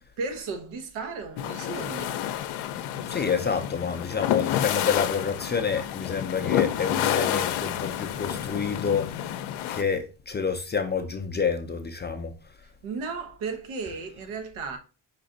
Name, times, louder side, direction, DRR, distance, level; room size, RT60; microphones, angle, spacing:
voice 1, 0.2-2.2 12.8-14.8, right 4 dB, 85° right, 1.0 m, -34 dB
sound 1, 1.4-9.8, left 11 dB, 85° left, 0.6 m, -29 dB
voice 2, 3.1-9.2 9.7-12.3, left 6 dB, 25° left, 0.3 m, -28 dB
5.1 x 2.5 x 3.8 m
cardioid pair, 125°, 48 cm